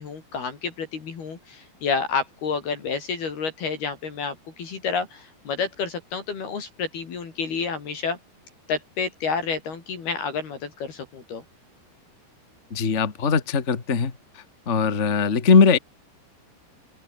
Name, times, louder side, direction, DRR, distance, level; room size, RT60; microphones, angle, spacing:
voice 1, 0.0-8.2 8.7-11.4, left 5 dB, 60° left, 5.8 m, -29 dB
voice 2, 12.7-14.1 14.7-15.8, left 5 dB, 85° left, 0.6 m, -20 dB
open air
omnidirectional pair, 5.2 m